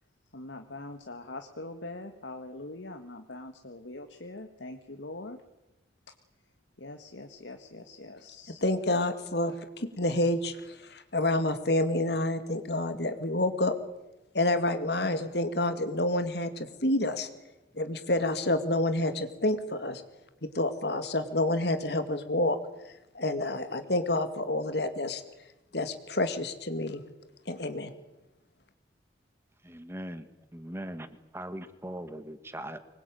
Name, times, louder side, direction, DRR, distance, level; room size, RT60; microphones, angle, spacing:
voice 1, 0.2-5.4 6.1-6.5 6.8-8.6, left 2 dB, 85° left, 5 dB, 1.7 m, -43 dB
voice 2, 8.6-13.7 14.3-17.3 17.7-20.0 20.4-22.6 22.8-25.2 25.7-27.0 27.5-27.9, left 1 dB, 65° left, 9 dB, 2.4 m, -28 dB
voice 3, 29.6-32.8, right 1 dB, 15° right, 10 dB, 1.7 m, -40 dB
25.0 x 21.0 x 9.1 m, 0.95 s
head